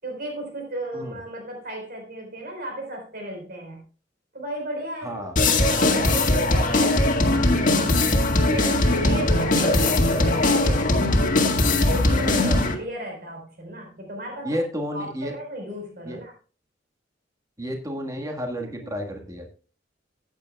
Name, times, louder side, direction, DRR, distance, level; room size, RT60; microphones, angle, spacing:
voice 1, 0.0-3.8 4.3-5.2 5.6-6.9 8.4-10.9 11.8-14.6 14.9-16.3 18.8-19.1, right 1 dB, 55° right, 2 dB, 4.2 m, -35 dB
voice 2, 5.0-5.3 6.7-7.0 12.2-12.6 14.4-15.3 16.0-16.2 17.6-19.5, equal, 20° right, 3 dB, 1.6 m, -31 dB
sound 1, 5.4-12.7, left 2 dB, 45° left, 1.8 m, -20 dB
15.0 x 9.2 x 2.3 m, 0.37 s
head